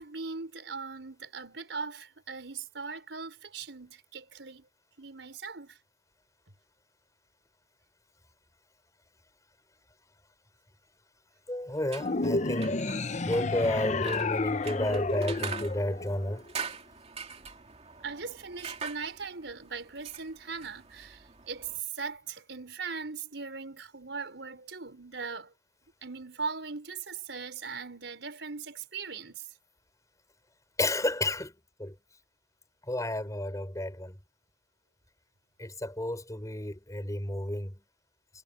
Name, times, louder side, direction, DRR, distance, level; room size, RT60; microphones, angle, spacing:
voice 1, 0.0-4.6 5.0-5.8 18.0-21.7 21.9-25.5 26.0-29.4, right 4 dB, 90° right, 4.6 m, -39 dB
voice 2, 11.5-12.8 13.2-16.4 30.8-31.5 31.8-32.0 32.9-34.2 35.6-37.7, left 1 dB, 20° left, 5.3 m, -31 dB
sound 1, 11.7-21.8, right 5 dB, 35° right, 2.5 m, -44 dB
sound 2, 12.0-16.5, left 3 dB, 40° left, 0.7 m, -31 dB
head